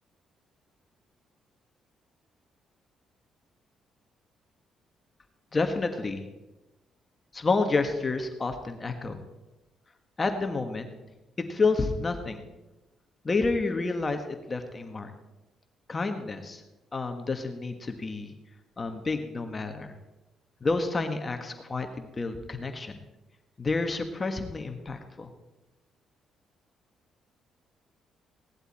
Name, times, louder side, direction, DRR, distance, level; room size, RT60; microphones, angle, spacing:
voice 1, 5.5-6.2 7.3-9.2 10.2-10.9 11.4-12.4 13.2-14.2 14.5-15.1 15.9-16.6 16.9-18.3 18.8-19.9 20.6-23.0 23.6-25.3, left 3 dB, 30° left, 6 dB, 1.5 m, -29 dB
17.5 x 11.5 x 4.3 m, 1.0 s
cardioid pair, 90°, 0 cm